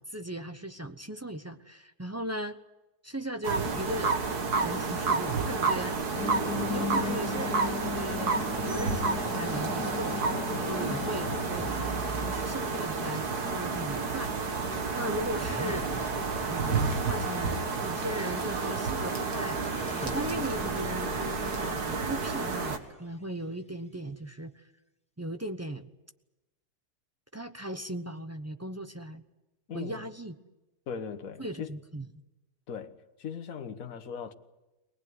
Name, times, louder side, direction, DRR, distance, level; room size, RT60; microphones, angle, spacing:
voice 1, 0.0-2.6 3.0-4.2 4.6-6.0 6.7-10.2 10.5-11.7 12.2-14.3 14.9-16.1 16.5-19.6 20.0-24.6 25.2-25.9 27.3-29.2 29.7-30.4 31.4-32.1, right 1 dB, 20° right, 0.4 m, -37 dB
sound 1, 3.4-22.8, right 4 dB, 60° right, 2.2 m, -30 dB
sound 2, 6.1-11.4, left 5 dB, 70° left, 1.8 m, -35 dB
sound 3, 11.6-22.9, equal, 5° left, 0.7 m, -44 dB
voice 2, 29.7-30.0 30.9-31.7 32.7-34.3, left 7 dB, 55° left, 1.6 m, -39 dB
24.0 x 19.5 x 9.5 m
omnidirectional pair, 1.9 m